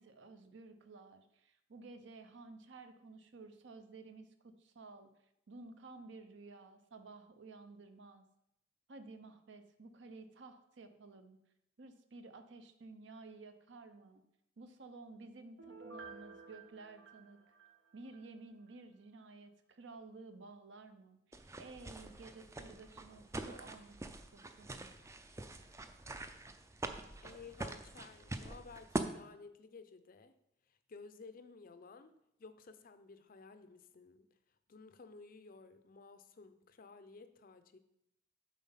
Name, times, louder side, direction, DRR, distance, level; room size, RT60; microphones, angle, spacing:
voice 1, 0.0-5.1 5.5-8.2 8.9-11.4 11.8-14.2 14.6-17.4 17.9-23.9 24.3-24.9, right 3 dB, 65° right, 8 dB, 0.7 m, -54 dB
Piano, 15.6-18.3 18.7-18.8, right 4 dB, 80° right, 1.2 m, -53 dB
sound 1, 21.3-29.0, right 2 dB, 15° right, 0.4 m, -44 dB
voice 2, 27.2-30.4 30.7-32.1 32.4-34.3 34.7-37.8, left 4 dB, 45° left, 10 dB, 0.5 m, -55 dB
7.2 x 4.3 x 5.6 m, 0.81 s
head